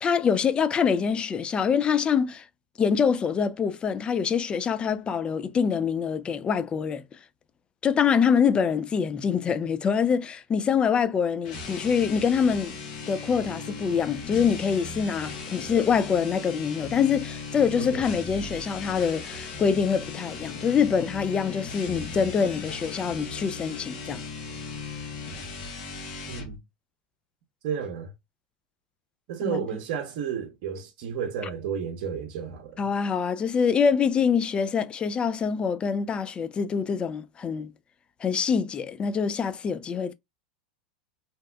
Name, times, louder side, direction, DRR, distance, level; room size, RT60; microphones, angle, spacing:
voice 1, 0.0-2.4 2.8-7.0 7.8-12.7 13.1-24.2 29.4-29.6 32.8-37.7 38.2-40.1, left 6 dB, 20° left, 0.4 m, -25 dB
sound 1, 11.4-26.6, left 4 dB, 65° left, 1.2 m, -37 dB
voice 2, 17.8-18.1 26.3-26.6 27.6-28.1 29.3-32.9, right 7 dB, 55° right, 0.7 m, -32 dB
2.8 x 2.2 x 3.3 m
hypercardioid pair, 110°, 5 cm